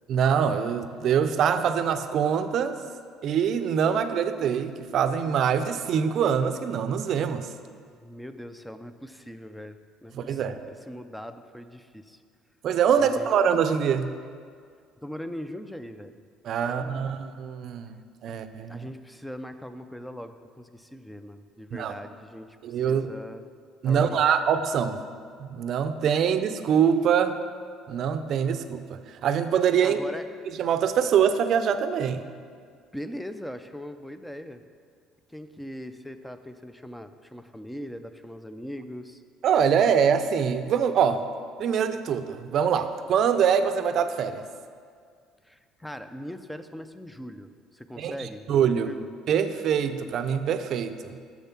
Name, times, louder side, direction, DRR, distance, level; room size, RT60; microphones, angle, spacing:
voice 1, 0.1-2.8 3.2-7.5 10.1-10.6 12.6-14.1 16.4-18.9 21.7-22.0 22.6-23.1 23.8-25.0 25.4-27.4 27.9-30.0 30.6-32.2 39.4-41.3 41.6-44.4 48.0-48.9 49.3-51.2, right 7 dB, 60° right, 10 dB, 0.5 m, -24 dB
voice 2, 7.9-10.6 10.9-12.2 13.0-13.3 15.0-16.2 16.6-17.2 18.2-18.3 18.7-23.4 23.8-24.2 29.8-30.2 32.9-34.6 35.3-39.2 45.4-49.1, equal, 5° left, 10 dB, 0.5 m, -40 dB
6.8 x 6.4 x 5.8 m, 2.1 s
supercardioid pair, 90°, 0 cm